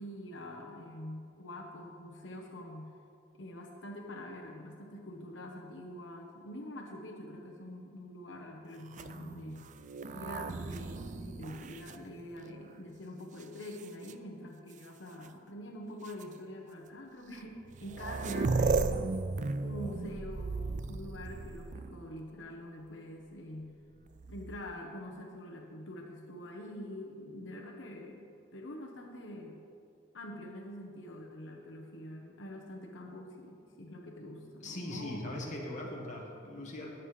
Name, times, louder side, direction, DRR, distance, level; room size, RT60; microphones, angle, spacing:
voice 1, 0.0-2.9 3.4-9.7 10.1-19.1 19.6-23.7 24.3-29.6 30.1-35.5 35.8-35.9, left 1 dB, 85° left, 0 dB, 1.1 m, -45 dB
sound 1, 8.9-12.7 13.4-14.1 15.2-15.3 16.1-16.2 17.4-17.5 17.7-22.1 24.1-24.8, right 3 dB, 40° right, 0.4 m, -35 dB
voice 2, 34.6-36.9, left 1 dB, 40° left, -2 dB, 1.7 m, -40 dB
20.0 x 7.6 x 3.3 m, 2.4 s
head